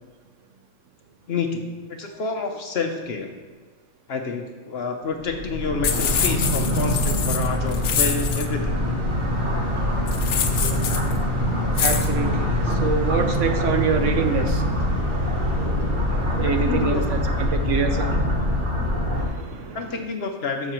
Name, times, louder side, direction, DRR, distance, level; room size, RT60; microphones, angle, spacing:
voice 1, 1.3-3.3 4.1-8.8 16.4-17.0 19.7-20.7, left 4 dB, 55° left, 4 dB, 0.8 m, -29 dB
sound 1, 5.2-19.3, left 1 dB, 40° right, 1.3 m, -24 dB
sound 2, 5.8-8.5 10.1-11.1 11.8-12.1, left 8 dB, 75° left, 1.0 m, -25 dB
voice 2, 11.8-18.5 18.8-20.0, right 5 dB, 65° right, 6 dB, 1.0 m, -27 dB
12.5 x 6.6 x 3.0 m, 1.4 s
omnidirectional pair, 1.4 m